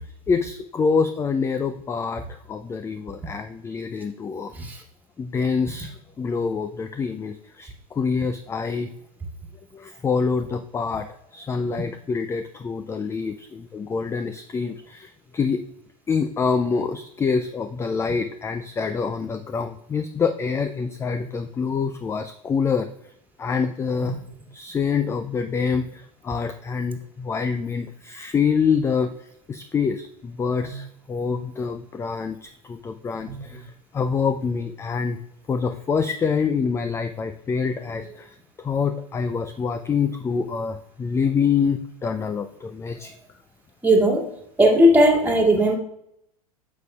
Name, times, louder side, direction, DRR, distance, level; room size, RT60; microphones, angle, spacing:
voice 1, 0.3-4.5 5.2-8.9 9.7-15.6 16.1-22.9 23.4-24.2 24.5-25.9 26.2-29.1 29.5-33.6 33.9-35.2 35.5-38.3 38.6-43.1, left 5 dB, 15° left, 9 dB, 0.4 m, -26 dB
voice 2, 43.8-44.3 44.6-45.8, equal, 10° right, 1 dB, 2.1 m, -18 dB
9.1 x 6.7 x 2.3 m, 0.74 s
hypercardioid pair, 90°, 18 cm